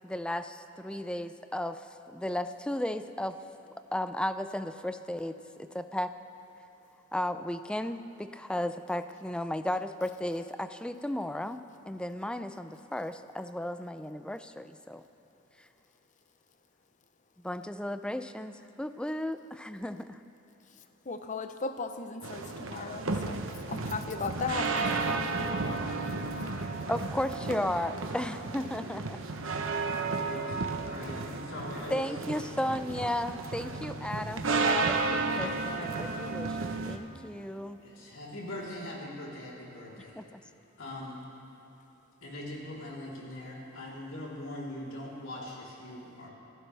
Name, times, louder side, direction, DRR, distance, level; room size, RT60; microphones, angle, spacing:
voice 1, 0.0-3.4 3.9-6.1 7.1-15.0 15.6-15.7 17.4-20.2 26.9-29.2 31.9-37.8 40.2-40.4, left 1 dB, 5° left, 10 dB, 0.4 m, -35 dB
voice 2, 21.1-24.9, left 4 dB, 40° left, 8 dB, 0.8 m, -36 dB
sound 1, 22.2-37.0, right 3 dB, 75° right, 1.0 m, -33 dB
voice 3, 30.2-32.1 37.7-40.2 40.8-41.2 42.2-46.3, left 1 dB, 80° left, -5 dB, 3.8 m, -41 dB
26.0 x 15.5 x 3.4 m, 2.9 s
head